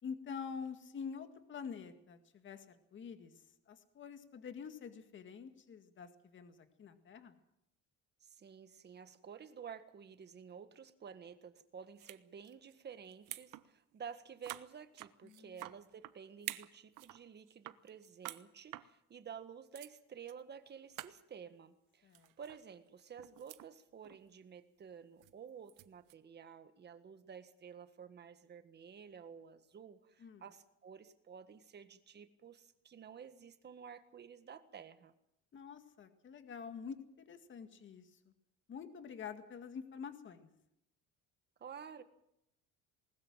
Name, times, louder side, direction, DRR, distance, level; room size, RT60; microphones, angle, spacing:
voice 1, 0.0-3.3 3.7-7.3 15.2-15.5 22.0-22.3 30.2-30.4 35.5-38.1 38.7-40.5, left 6 dB, 40° left, 8 dB, 2.1 m, -47 dB
voice 2, 8.2-22.1 22.4-35.1 41.6-42.0, right 7 dB, 35° right, 10 dB, 1.7 m, -52 dB
sound 1, 12.0-12.2 12.4-12.7 13.1-13.7 13.9-14.0 14.4-16.1 16.4-17.2 17.5-18.4 18.7-18.9 19.4-19.5 19.7-19.9 20.3-20.4 20.7-20.8 20.9-21.1 22.1-22.6 23.0-23.7 24.0-24.3 25.2-26.1, right 16 dB, 75° right, 1.1 m, -48 dB
20.5 x 20.0 x 7.5 m, 0.80 s
cardioid pair, 145°, 31 cm